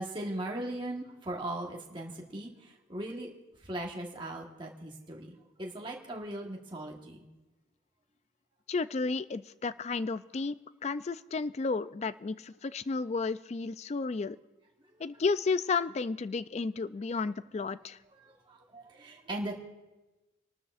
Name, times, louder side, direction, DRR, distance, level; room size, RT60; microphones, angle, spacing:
voice 1, 0.0-3.3 3.6-7.3 14.9-15.0 17.6-17.7 18.2-19.6, right 1 dB, 25° right, -1 dB, 1.3 m, -39 dB
voice 2, 8.7-14.4 15.0-18.0, left 4 dB, 35° left, 15 dB, 0.3 m, -32 dB
30.0 x 13.0 x 2.5 m, 1.1 s
head